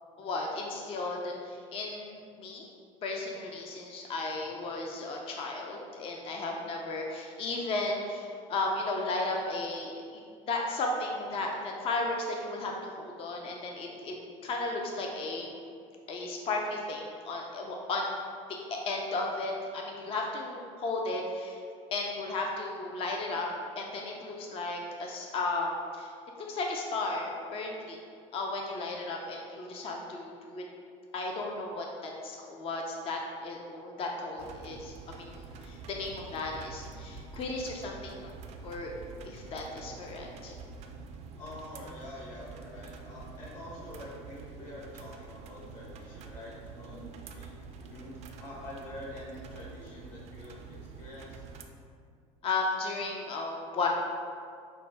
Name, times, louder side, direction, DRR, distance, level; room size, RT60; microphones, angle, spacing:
voice 1, 0.2-2.7 3.0-14.1 14.4-15.6 16.1-18.2 18.7-21.6 21.9-23.5 23.8-26.1 26.4-28.0 28.3-30.6 31.1-38.3 38.6-38.9 39.3-40.5 46.9-47.1 52.4-53.9, left 2 dB, 35° left, 0 dB, 0.5 m, -34 dB
sound 1, 34.4-51.6, right 5 dB, 45° right, 0.4 m, -47 dB
voice 2, 41.4-47.5 47.8-51.5, left 1 dB, 55° left, -6 dB, 1.5 m, -46 dB
5.2 x 2.1 x 3.3 m, 2.3 s
supercardioid pair, 105°, 16 cm